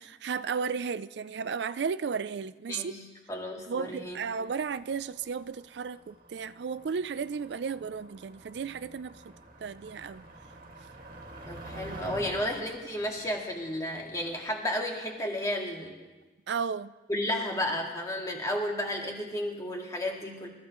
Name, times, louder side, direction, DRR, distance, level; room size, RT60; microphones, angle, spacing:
voice 1, 0.0-2.9 3.7-9.3 9.6-10.2 16.5-16.9, right 6 dB, 80° right, 14 dB, 0.4 m, -34 dB
voice 2, 3.3-4.2 11.5-16.0 17.1-20.5, left 1 dB, 20° left, 0 dB, 2.0 m, -32 dB
Motor vehicle (road), 4.1-14.5, right 1 dB, 50° right, 2.0 m, -48 dB
28.0 x 14.0 x 3.1 m, 1.2 s
head